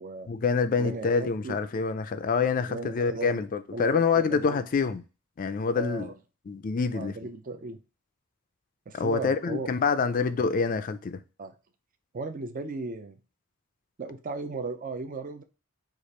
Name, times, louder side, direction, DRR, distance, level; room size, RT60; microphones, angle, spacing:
voice 1, 0.3-5.0 5.4-6.1 6.5-7.2 8.9-11.2, left 5 dB, 40° left, 0.3 m, -26 dB
voice 2, 0.8-1.6 2.7-3.4 3.7-4.6 5.7-6.1 6.9-7.8 8.9-9.7 10.0-10.1 11.4-11.5 12.1-13.1 14.0-15.4, right 3 dB, 40° right, 0.4 m, -36 dB
4.9 x 2.4 x 4.1 m
head